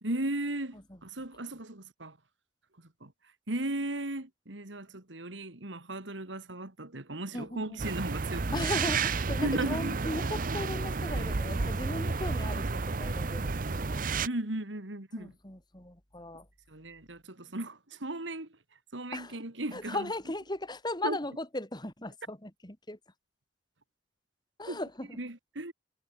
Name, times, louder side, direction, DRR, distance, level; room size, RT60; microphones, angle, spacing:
voice 1, 0.0-2.2 3.0-3.1 3.5-8.7 9.2-10.0 14.2-15.3 16.7-18.5 18.9-20.1 21.0-21.2 24.7-24.8 25.2-25.7, right 1 dB, 90° right, 2.8 m, -36 dB
voice 2, 7.3-7.8 8.5-14.0 15.2-16.5 19.1-19.4 19.7-23.0 24.6-25.2, left 1 dB, 25° left, 4.2 m, -37 dB
sound 1, 7.8-14.3, right 4 dB, 45° right, 0.8 m, -31 dB
head